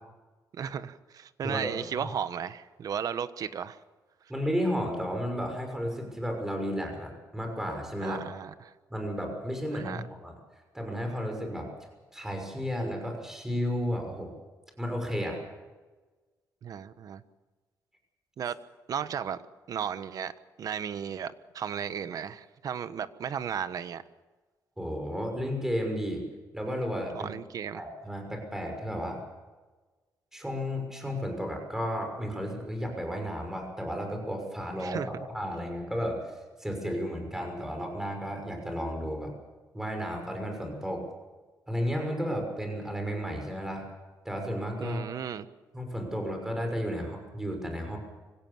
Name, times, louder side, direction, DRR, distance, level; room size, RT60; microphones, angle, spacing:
voice 1, 0.5-3.8 8.0-8.7 9.7-10.0 16.6-17.2 18.4-18.6 18.9-19.4 19.7-20.3 20.6-24.0 27.2-27.8 34.8-35.1 44.8-45.4, right 8 dB, 60° right, 13 dB, 1.2 m, -35 dB
voice 2, 1.4-2.1 4.3-8.2 8.9-10.4 10.7-11.7 12.1-14.3 14.8-15.4 24.8-26.2 26.5-27.3 27.7-29.2 30.3-36.2 36.6-39.3 39.7-41.1 41.7-43.9 44.2-45.1 45.7-48.0, equal, 5° right, 3 dB, 6.0 m, -33 dB
25.0 x 17.0 x 7.3 m, 1.3 s
cardioid pair, 120°, 7 cm